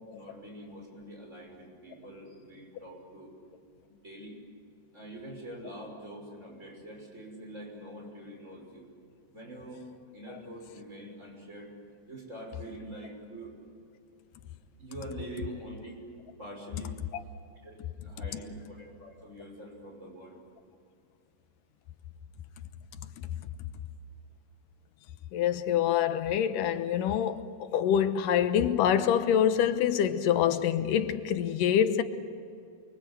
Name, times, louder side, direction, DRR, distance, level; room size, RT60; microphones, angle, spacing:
voice 1, 0.0-3.3 3.9-4.4 4.9-8.8 9.3-9.8 10.1-11.7 12.1-13.6 14.8-15.9 16.4-17.0 17.6-17.8 18.0-20.4, right 1 dB, 20° right, 6.6 m, -44 dB
voice 2, 25.3-32.0, left 9 dB, 90° left, 2.7 m, -26 dB
29.0 x 23.0 x 8.3 m
omnidirectional pair, 3.7 m